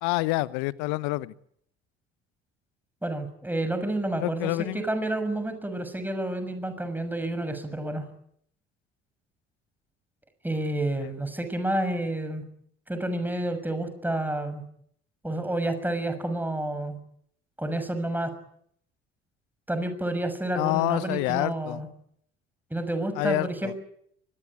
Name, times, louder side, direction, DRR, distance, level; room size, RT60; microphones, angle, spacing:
voice 1, 0.0-1.3 4.2-4.8 11.0-11.1 20.5-21.8 23.2-23.7, left 21 dB, 65° left, 19 dB, 1.1 m, -27 dB
voice 2, 3.0-8.0 10.4-12.4 12.9-14.6 15.2-17.0 17.6-18.3 19.7-21.9 22.7-23.8, right 1 dB, 5° right, 9 dB, 6.4 m, -29 dB
24.0 x 21.0 x 9.6 m, 0.69 s
figure-of-eight pair, 55°, 31 cm